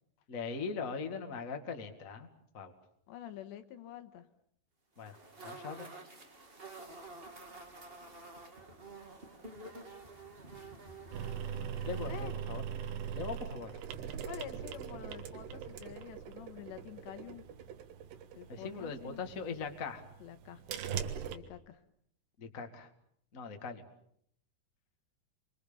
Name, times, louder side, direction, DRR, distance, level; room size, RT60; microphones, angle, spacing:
voice 1, 0.3-2.3 2.5-2.7 5.0-5.2 5.4-5.9 11.8-12.6 13.1-13.7 18.5-20.0 22.4-22.9 23.3-23.8, left 5 dB, 40° left, 5 dB, 1.2 m, -40 dB
voice 2, 3.1-4.3 12.0-12.3 14.3-17.4 18.4-19.2 20.2-20.6 21.3-21.8, left 11 dB, 75° left, 9 dB, 3.4 m, -47 dB
sound 1, 5.0-12.4, right 2 dB, 30° right, 1.0 m, -50 dB
sound 2, 11.1-21.4, right 8 dB, 70° right, 3.5 m, -41 dB
29.5 x 24.0 x 7.1 m, 0.71 s
omnidirectional pair, 5.3 m